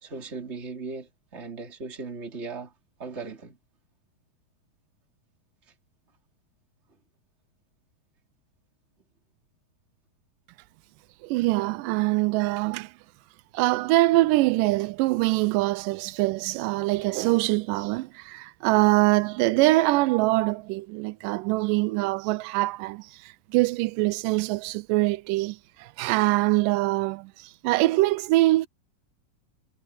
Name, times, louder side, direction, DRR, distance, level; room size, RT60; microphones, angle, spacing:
voice 1, 0.0-2.7 3.0-3.6 5.7-5.8, right 4 dB, 20° right, 3.3 m, -38 dB
voice 2, 11.2-12.9 13.5-28.7, right 19 dB, 85° right, 1.9 m, -24 dB
omnidirectional pair, 4.4 m